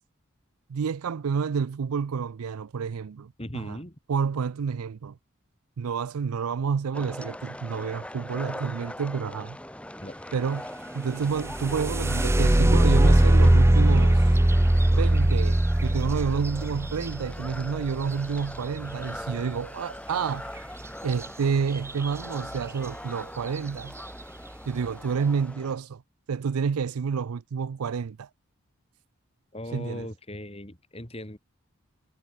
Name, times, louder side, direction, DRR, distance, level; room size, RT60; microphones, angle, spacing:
voice 1, 0.7-3.8 4.1-5.2 5.8-9.6 10.3-10.7 10.9-14.2 14.9-20.5 21.0-23.9 24.7-26.0 26.3-28.3 29.7-30.1, right 6 dB, 85° right, 0.5 m, -29 dB
voice 2, 3.4-3.9 10.0-10.2 29.5-31.4, left 1 dB, 25° left, 3.0 m, -38 dB
sound 1, 6.9-25.7, left 1 dB, 5° left, 1.8 m, -41 dB
sound 2, 11.2-19.0 21.1-21.3 21.7-22.2 22.8-22.9 23.5-23.8, right 1 dB, 10° right, 0.4 m, -21 dB
head